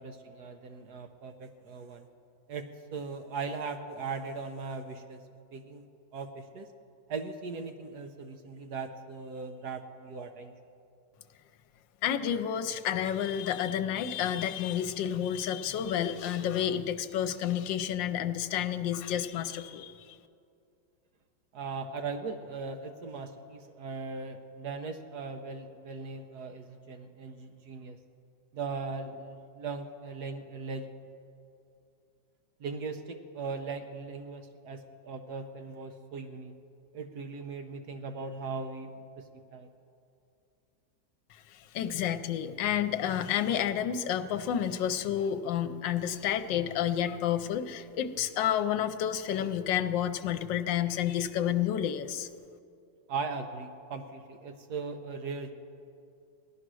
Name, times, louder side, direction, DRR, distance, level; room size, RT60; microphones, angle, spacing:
voice 1, 0.0-2.1 2.5-5.2 5.5-5.8 6.1-6.7 7.1-10.5 21.5-28.0 28.5-30.9 32.6-36.5 36.9-39.7 53.1-55.5, right 4 dB, 65° right, 6 dB, 1.2 m, -39 dB
voice 2, 12.0-19.9 41.7-52.3, left 10 dB, 80° left, 10 dB, 1.4 m, -30 dB
16.5 x 11.5 x 6.2 m, 2.5 s
omnidirectional pair, 2.0 m